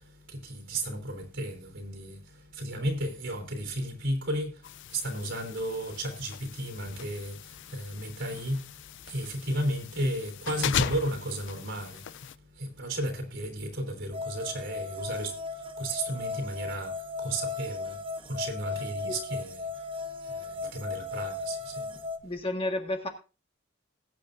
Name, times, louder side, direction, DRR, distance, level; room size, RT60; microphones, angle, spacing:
voice 1, 0.0-22.3, right 1 dB, 65° right, 3.4 m, -34 dB
sound 1, 4.6-12.3, left 8 dB, 60° left, 0.5 m, -38 dB
sound 2, 14.1-22.2, left 3 dB, 25° right, 0.9 m, -36 dB
voice 2, 22.2-23.1, left 2 dB, 30° left, 1.6 m, -31 dB
20.5 x 8.6 x 2.6 m
head